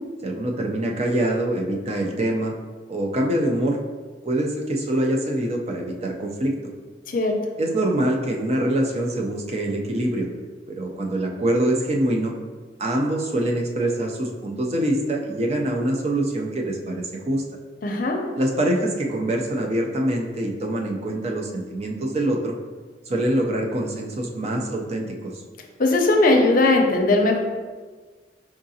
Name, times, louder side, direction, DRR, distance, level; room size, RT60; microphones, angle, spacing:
voice 1, 0.2-2.5 2.9-3.8 4.2-6.5 7.6-10.3 10.7-12.3 12.8-17.4 18.4-22.5 23.1-25.3, right 1 dB, 35° right, 1 dB, 0.5 m, -24 dB
voice 2, 17.8-18.2 25.8-27.4, left 2 dB, 50° left, 2 dB, 0.5 m, -18 dB
4.7 x 3.6 x 2.7 m, 1.4 s
head